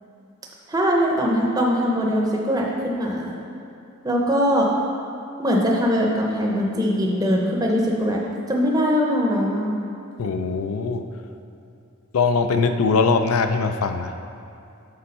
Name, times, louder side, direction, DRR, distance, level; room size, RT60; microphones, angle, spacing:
voice 1, 0.7-3.4 4.0-4.7 5.4-8.2 8.5-9.8, equal, 15° right, -2 dB, 0.6 m, -21 dB
voice 2, 10.2-11.0 12.1-14.1, left 4 dB, 80° left, 7 dB, 0.4 m, -21 dB
6.7 x 4.5 x 5.3 m, 2.6 s
head